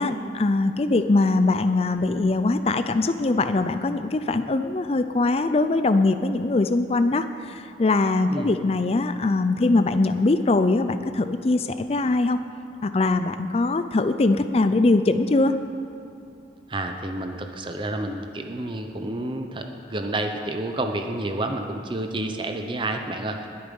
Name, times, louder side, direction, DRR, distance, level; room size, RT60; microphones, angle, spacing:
voice 1, 0.0-12.4 12.8-15.5, left 2 dB, 35° left, 10 dB, 0.4 m, -22 dB
voice 2, 16.7-19.6 19.9-23.5, right 2 dB, 30° right, 5 dB, 0.8 m, -29 dB
21.0 x 8.8 x 5.4 m, 2.8 s
head